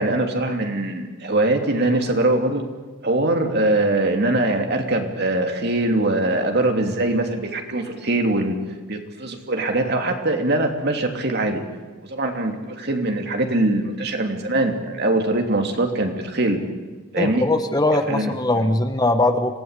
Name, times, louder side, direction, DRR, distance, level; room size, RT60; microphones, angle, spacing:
voice 1, 0.0-2.6 3.0-8.6 8.9-11.6 12.1-16.6 17.1-17.4 18.1-18.6, right 2 dB, 50° right, 4 dB, 3.0 m, -22 dB
voice 2, 17.2-19.6, left 2 dB, 20° left, 8 dB, 1.2 m, -20 dB
26.5 x 17.0 x 8.4 m, 1.3 s
head